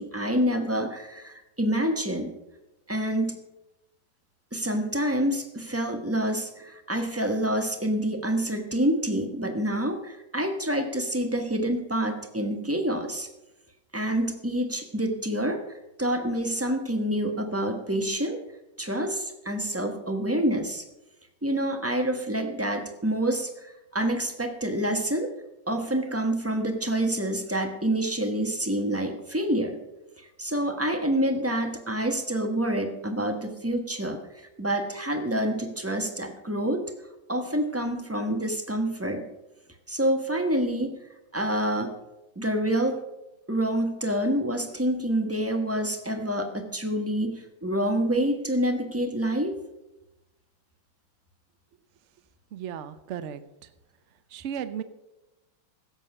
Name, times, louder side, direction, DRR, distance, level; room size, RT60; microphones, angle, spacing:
voice 1, 0.0-2.3 2.9-3.4 4.5-13.3 13.9-18.4 18.8-20.8 21.4-25.3 25.7-29.8 30.2-36.8 37.3-39.3 39.9-41.0 41.3-41.9 42.4-43.0 43.5-49.5, right 1 dB, 10° right, 5 dB, 0.8 m, -27 dB
voice 2, 52.5-53.7 54.3-54.8, right 8 dB, 65° right, 11 dB, 0.7 m, -35 dB
16.5 x 7.5 x 5.5 m, 0.96 s
omnidirectional pair, 2.2 m